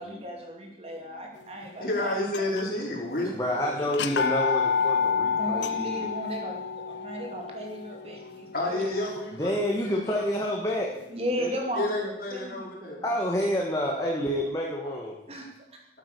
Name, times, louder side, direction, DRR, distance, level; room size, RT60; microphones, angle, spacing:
voice 1, 0.0-2.2 3.8-3.9 5.4-9.2 11.1-13.1 15.3-16.0, equal, 35° right, 1 dB, 2.5 m, -36 dB
voice 2, 1.8-4.1 8.5-10.3 11.4-13.0, left 1 dB, 50° left, -3 dB, 4.1 m, -31 dB
sound 1, 2.3-2.9 3.2-3.3 3.9-9.8, left 6 dB, 80° left, 0.7 m, -29 dB
voice 3, 3.3-6.1 9.3-10.9 13.0-15.1, equal, 20° left, -2 dB, 1.6 m, -28 dB
13.0 x 8.2 x 6.8 m, 0.87 s
head